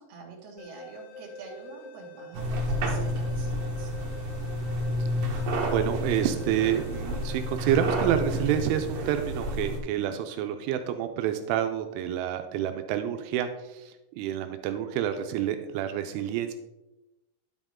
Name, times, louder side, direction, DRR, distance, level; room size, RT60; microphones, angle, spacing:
voice 1, 0.0-3.9, right 4 dB, 50° right, -3 dB, 2.1 m, -46 dB
sound 1, 0.6-9.5, left 1 dB, 80° left, 3.2 m, -46 dB
sound 2, 2.3-9.8, equal, 65° right, 3.4 m, -30 dB
voice 2, 5.7-16.5, right 10 dB, 85° right, 7 dB, 3.0 m, -28 dB
10.0 x 7.5 x 3.6 m, 0.97 s
omnidirectional pair, 5.6 m